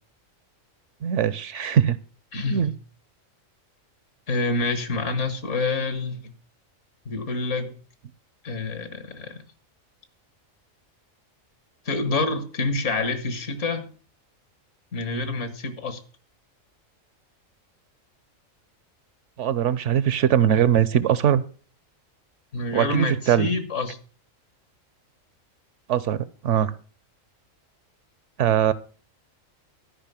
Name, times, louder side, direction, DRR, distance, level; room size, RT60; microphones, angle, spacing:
voice 1, 1.0-2.0 2.5-2.7 19.4-21.4 22.7-23.5 25.9-26.7 28.4-28.7, right 9 dB, 70° right, 17 dB, 1.0 m, -21 dB
voice 2, 2.3-2.7 4.3-6.3 7.1-7.8 8.4-9.4 11.9-13.9 14.9-16.0 22.5-24.0, left 3 dB, 65° left, 10 dB, 2.0 m, -27 dB
13.0 x 5.5 x 6.9 m, 0.40 s
omnidirectional pair, 1.4 m